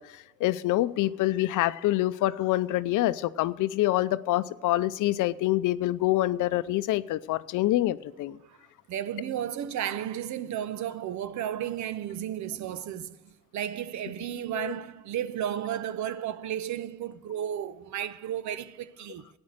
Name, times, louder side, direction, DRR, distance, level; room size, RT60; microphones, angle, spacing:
voice 1, 0.0-8.4 14.6-14.7, left 16 dB, 85° left, 0.6 m, -26 dB
voice 2, 8.9-19.3, right 10 dB, 70° right, 0.8 m, -33 dB
14.0 x 9.8 x 6.5 m
cardioid pair, 90°, 30 cm